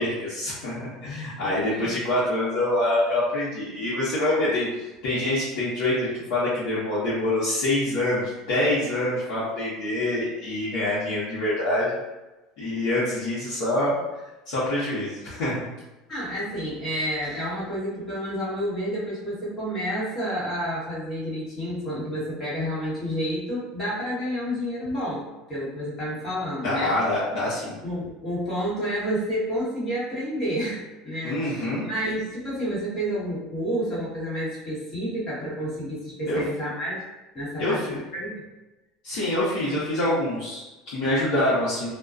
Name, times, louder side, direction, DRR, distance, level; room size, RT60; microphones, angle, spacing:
voice 1, 0.0-4.7 5.0-12.0 12.6-14.0 14.5-15.7 26.6-27.8 31.2-31.8 36.3-36.4 37.6-38.0 39.0-41.9, left 1 dB, 70° left, -10 dB, 0.8 m, -25 dB
voice 2, 1.4-1.9 16.1-26.9 27.8-37.0 37.3-38.4, equal, 35° left, -9 dB, 1.3 m, -30 dB
2.3 x 2.2 x 2.4 m, 1.1 s
supercardioid pair, 135°, 0 cm